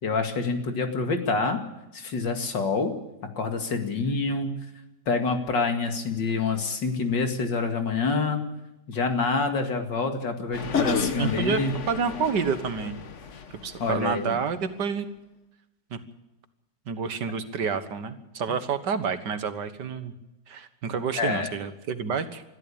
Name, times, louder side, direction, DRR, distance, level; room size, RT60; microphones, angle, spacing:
voice 1, 0.0-1.6 1.9-2.9 3.4-4.6 5.1-8.4 8.9-11.7 13.8-14.4 21.2-21.5, left 4 dB, 90° left, 5 dB, 2.9 m, -27 dB
sound 1, 10.5-14.3, left 6 dB, 45° left, 1.4 m, -32 dB
voice 2, 10.7-11.6 11.9-13.0 13.6-15.1 15.9-16.0 16.9-20.1 20.5-22.4, right 6 dB, 70° right, 11 dB, 2.0 m, -29 dB
21.5 x 14.0 x 8.7 m, 0.96 s
omnidirectional pair, 1.9 m